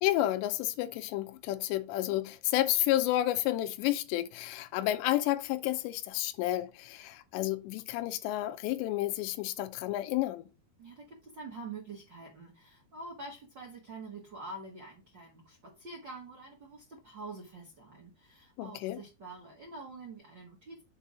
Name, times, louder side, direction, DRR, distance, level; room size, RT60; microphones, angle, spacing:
voice 1, 0.0-10.5 18.6-19.0, left 15 dB, 90° left, 2.9 m, -31 dB
voice 2, 10.8-20.8, right 3 dB, 90° right, 0.9 m, -46 dB
7.1 x 4.1 x 4.9 m
omnidirectional pair, 4.9 m